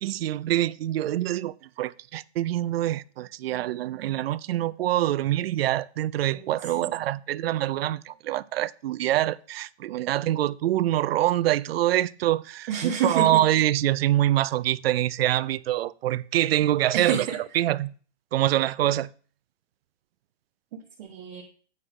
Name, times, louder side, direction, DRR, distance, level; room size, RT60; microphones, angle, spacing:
voice 1, 0.0-17.3 17.5-17.9 18.3-19.1, right 13 dB, 60° right, 0.5 m, -25 dB
voice 2, 6.3-6.9 12.7-13.4 16.9-17.4 20.7-21.4, right 7 dB, 40° right, 1.1 m, -29 dB
8.7 x 4.7 x 4.9 m
hypercardioid pair, 160°, 34 cm